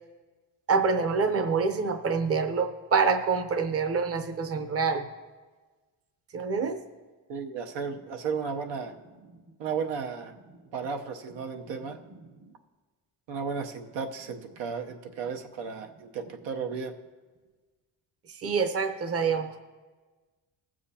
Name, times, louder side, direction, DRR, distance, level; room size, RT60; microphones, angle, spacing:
voice 1, 0.7-5.0 6.3-6.8 12.4-12.5 18.3-19.6, right 5 dB, 35° right, 7 dB, 0.8 m, -26 dB
voice 2, 7.3-9.0 9.6-10.3 10.7-12.0 13.3-17.0, right 5 dB, 80° right, 5 dB, 0.9 m, -34 dB
18.5 x 7.5 x 2.8 m, 1.3 s
cardioid pair, 105°, 43 cm